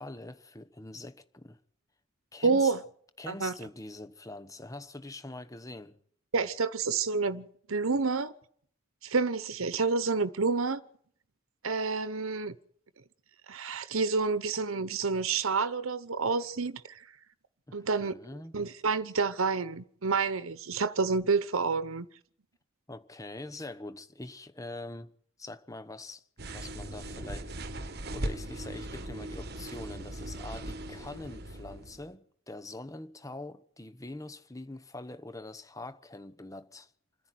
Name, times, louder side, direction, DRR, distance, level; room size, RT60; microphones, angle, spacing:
voice 1, 0.0-1.6 2.3-2.7 3.2-6.0 17.7-18.6 22.9-25.1 25.4-26.2 26.5-36.9, left 2 dB, 15° left, 1.1 m, -44 dB
voice 2, 2.4-2.8 3.3-3.5 6.3-8.3 9.0-10.8 11.6-12.5 13.5-17.0 17.7-18.1 18.5-22.1, right 4 dB, 85° right, 1.0 m, -29 dB
sound 1, 26.4-32.1, right 1 dB, 50° right, 1.5 m, -39 dB
28.0 x 10.5 x 9.4 m
head